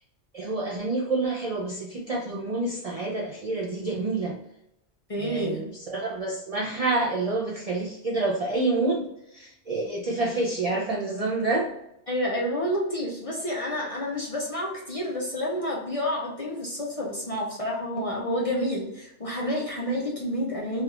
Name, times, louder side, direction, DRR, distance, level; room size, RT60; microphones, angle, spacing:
voice 1, 0.3-4.3 5.2-9.1 9.3-11.7, right 2 dB, 60° right, -2 dB, 0.4 m, -28 dB
voice 2, 5.1-5.6 12.1-20.8, equal, 40° left, -3 dB, 0.5 m, -29 dB
3.3 x 2.3 x 3.0 m, 0.82 s
omnidirectional pair, 1.2 m